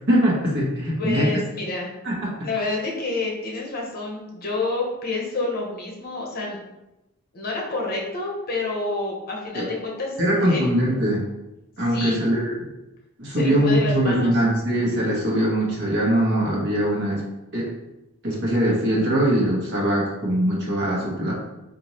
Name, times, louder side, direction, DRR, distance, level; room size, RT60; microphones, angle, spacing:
voice 1, 0.1-1.3 2.0-2.3 9.5-9.7 10.2-11.2 11.8-12.5 13.2-17.2 17.5-17.7 18.2-21.3, right 1 dB, 55° right, -3 dB, 1.0 m, -22 dB
voice 2, 1.0-1.9 2.4-6.6 7.3-10.7 11.9-12.2 13.3-14.3, left 3 dB, 45° left, -2 dB, 0.9 m, -28 dB
3.8 x 2.5 x 3.0 m, 0.93 s
head